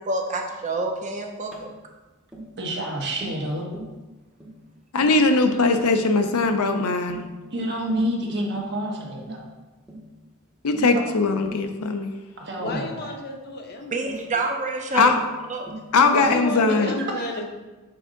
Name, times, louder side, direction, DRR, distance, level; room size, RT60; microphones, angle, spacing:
voice 1, 0.0-1.7 10.9-11.0 13.9-15.1 15.5-15.7, right 3 dB, 35° right, 2 dB, 0.7 m, -28 dB
Tap, 1.5-1.7 2.3-2.5 3.2-3.5 3.7-4.0 4.4-4.6 5.0-5.2 5.7-6.0 6.4-6.7 7.1-7.3 7.9-8.1 8.6-8.8 9.2-9.5 9.9-10.1 10.7-11.0 11.4-11.6 12.7-13.0 14.1-14.3 15.1-15.3 15.7-15.9 16.2-16.5, right 1 dB, 5° right, 0.8 m, -39 dB
voice 2, 2.6-3.7 7.5-9.4 12.4-13.1 17.2-17.3, equal, 50° right, 0 dB, 1.0 m, -28 dB
voice 3, 4.9-7.2 10.6-12.1 14.9-15.2 15.9-16.9, left 3 dB, 85° left, 6 dB, 0.6 m, -20 dB
voice 4, 12.6-14.5 16.1-17.5, left 2 dB, 45° left, 4 dB, 0.7 m, -32 dB
6.7 x 3.8 x 3.7 m, 1.2 s
head